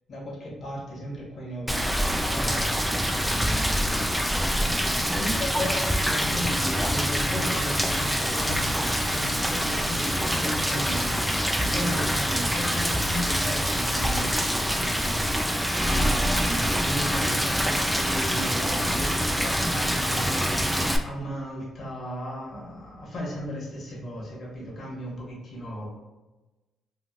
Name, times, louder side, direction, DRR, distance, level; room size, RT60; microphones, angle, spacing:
voice 1, 0.1-4.0 5.2-20.8 21.0-26.0, equal, 50° left, -4 dB, 1.1 m, -36 dB
Rain, 1.7-21.0, equal, ahead, 0.3 m, -25 dB
voice 2, 4.7-5.3 18.4-19.2, right 1 dB, 75° right, -8 dB, 1.2 m, -41 dB
3.0 x 2.5 x 2.5 m, 1.1 s
cardioid pair, 90°, 0 cm